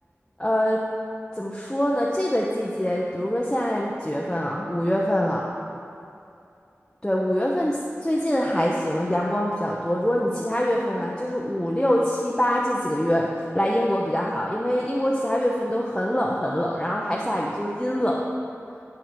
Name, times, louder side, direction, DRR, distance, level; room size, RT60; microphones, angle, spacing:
voice 1, 0.4-0.8 1.4-5.5 7.0-13.3 13.5-18.2, equal, 15° left, -3 dB, 0.7 m, -24 dB
10.5 x 4.8 x 4.7 m, 2.6 s
wide cardioid pair, 50°, 5 cm